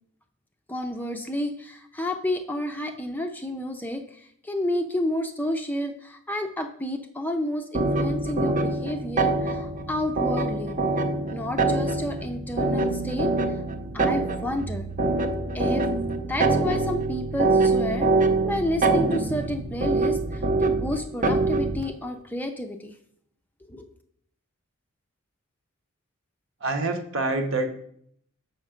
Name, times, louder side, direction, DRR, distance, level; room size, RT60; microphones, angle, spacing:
voice 1, 0.7-10.8 11.3-13.3 13.9-14.9 15.5-15.9 16.3-18.1 18.4-22.9 23.7-23.9, left 1 dB, 10° left, 5 dB, 0.4 m, -30 dB
sound 1, 7.7-21.9, right 3 dB, 35° right, 0.6 m, -25 dB
voice 2, 26.6-27.7, right 2 dB, 60° right, 6 dB, 0.9 m, -26 dB
6.4 x 5.7 x 5.0 m, 0.68 s
head